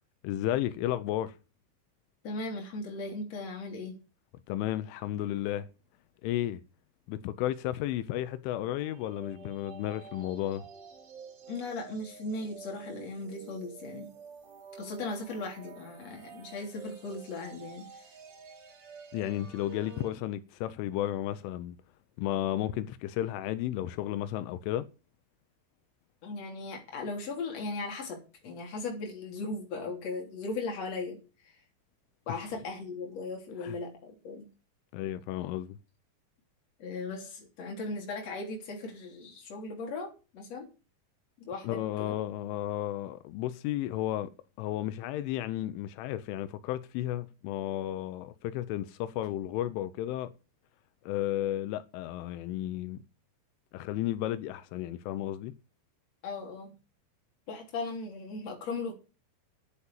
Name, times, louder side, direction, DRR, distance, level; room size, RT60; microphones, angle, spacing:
voice 1, 0.2-1.4 4.5-5.7 6.2-6.6 7.1-10.7 19.1-21.8 22.2-24.9 33.6-33.8 34.9-35.8 41.6-44.3 44.6-50.3 51.0-53.0 53.7-55.5, left 13 dB, 85° left, 3.2 m, -33 dB
voice 2, 2.2-4.0 11.5-14.1 14.8-18.1 26.2-31.5 32.3-34.5 36.8-40.7 41.4-42.2 56.2-56.7 57.5-58.9, left 3 dB, 35° left, 4.0 m, -38 dB
sound 1, 8.8-20.1, right 5 dB, 65° right, 4.6 m, -49 dB
10.5 x 8.2 x 7.3 m
omnidirectional pair, 5.5 m